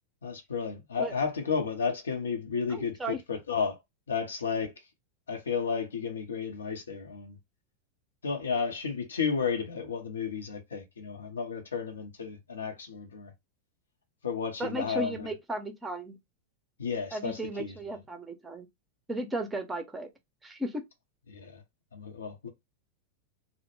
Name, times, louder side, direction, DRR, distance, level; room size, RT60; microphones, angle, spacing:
voice 1, 0.2-3.8 4.1-4.7 5.3-7.4 8.2-13.3 14.2-15.3 16.8-17.8 21.3-21.6 21.9-22.5, left 6 dB, 70° left, 0.7 m, -32 dB
voice 2, 2.7-3.2 14.6-16.2 17.1-18.7 19.1-20.1 20.4-20.8, right 1 dB, 10° right, 0.6 m, -35 dB
2.1 x 2.1 x 3.0 m
figure-of-eight pair, 90°, 0 cm